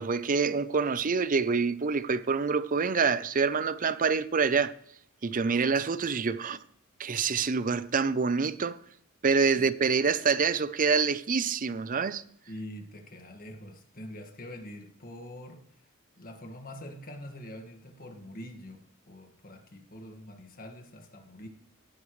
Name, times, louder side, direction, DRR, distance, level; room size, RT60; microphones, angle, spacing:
voice 1, 0.0-4.7 5.2-6.6 7.0-8.8 9.2-12.2, right 5 dB, 40° right, 0.6 m, -26 dB
voice 2, 12.5-15.6 16.2-21.5, left 1 dB, 45° left, 1.8 m, -44 dB
17.0 x 11.5 x 3.2 m
head